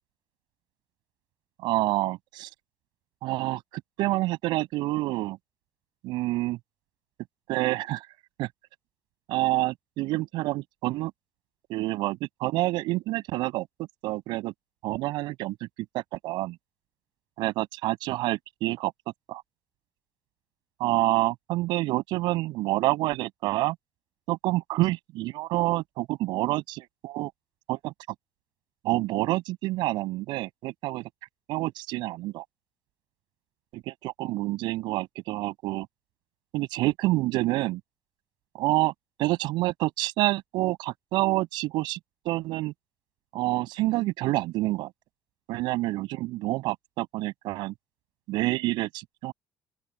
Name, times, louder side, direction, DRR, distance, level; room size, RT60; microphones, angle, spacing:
voice 1, 1.6-2.5 3.2-5.4 6.0-6.6 7.5-8.1 8.4-8.5 9.3-11.1 11.7-13.7 14.0-14.5 14.8-15.7 15.9-16.6 17.4-18.9 19.3-19.4 20.8-23.8 24.3-27.3 27.7-27.9 28.8-31.1 31.5-32.4 33.7-35.9 36.5-37.8 38.5-38.9 39.2-42.0 42.2-42.7 43.3-44.9 45.5-47.7 48.3-49.3, right 18 dB, 75° right, 7.5 m, -28 dB
open air
hypercardioid pair, 60°, 8 cm